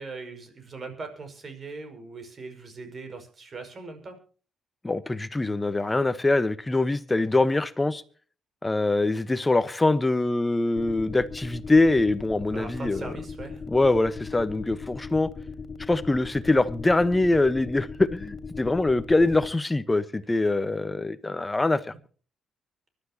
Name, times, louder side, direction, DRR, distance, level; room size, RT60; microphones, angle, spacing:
voice 1, 0.0-4.2 12.5-13.6 20.5-20.6, right 3 dB, 40° right, 5.7 m, -40 dB
voice 2, 4.8-8.0 8.6-13.0 13.7-15.3 15.9-21.8, left 2 dB, 15° left, 1.1 m, -23 dB
sound 1, 10.8-19.5, left 5 dB, 40° left, 3.2 m, -38 dB
24.5 x 12.0 x 2.9 m
cardioid pair, 90°, 0 cm